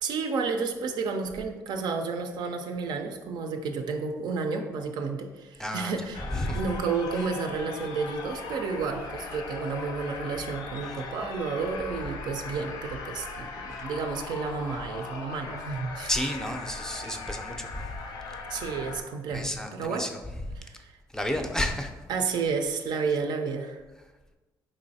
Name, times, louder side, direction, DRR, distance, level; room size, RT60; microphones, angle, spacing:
voice 1, 0.0-16.1 18.5-20.1 20.6-20.9 22.1-23.8, right 4 dB, 70° right, 5 dB, 0.4 m, -31 dB
voice 2, 5.6-5.9 6.3-6.6 16.1-18.0 19.3-20.1 21.1-21.9, left 1 dB, 5° left, 4 dB, 0.4 m, -31 dB
sound 1, 6.1-19.0, left 4 dB, 70° left, 0.5 m, -39 dB
3.8 x 3.0 x 2.7 m, 1.2 s
cardioid pair, 75°, 8 cm